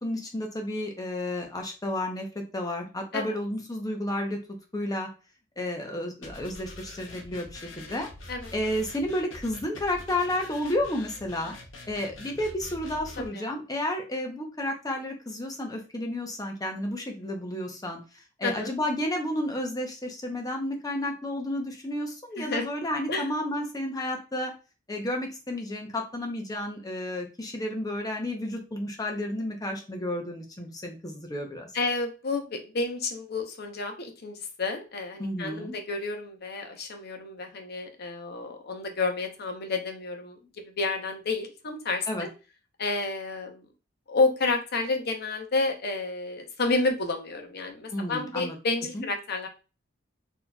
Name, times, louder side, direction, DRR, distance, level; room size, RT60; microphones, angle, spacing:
voice 1, 0.0-4.4 4.7-5.1 5.6-8.1 8.5-11.5 11.9-18.0 18.4-24.5 24.9-31.7 35.2-35.8 42.1-42.3 47.9-48.6 48.9-49.0, left 1 dB, 20° left, 2 dB, 0.8 m, -31 dB
sound 1, 6.2-13.3, left 2 dB, 90° left, 0.9 m, -45 dB
voice 2, 18.4-18.7 22.4-22.7 23.1-23.3 31.7-40.4 40.6-42.3 42.8-43.7 44.1-49.5, left 3 dB, 55° left, 5 dB, 0.7 m, -30 dB
4.1 x 2.9 x 2.3 m, 0.32 s
head